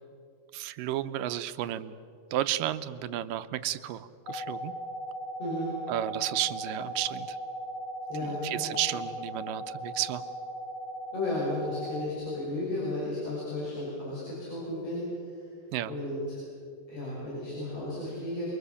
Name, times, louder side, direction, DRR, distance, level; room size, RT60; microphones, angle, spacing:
voice 1, 0.5-2.0 2.3-4.7 5.9-7.4 8.2-10.2 15.7-15.9, right 13 dB, 80° right, 12 dB, 2.4 m, -32 dB
sound 1, 4.3-12.1, right 1 dB, 65° left, 2.9 m, -38 dB
voice 2, 5.4-5.8 8.1-8.7 11.1-15.5 15.9-16.4 16.9-18.5, left 1 dB, 45° left, -7 dB, 7.1 m, -34 dB
28.0 x 23.5 x 7.0 m, 2.5 s
omnidirectional pair, 3.9 m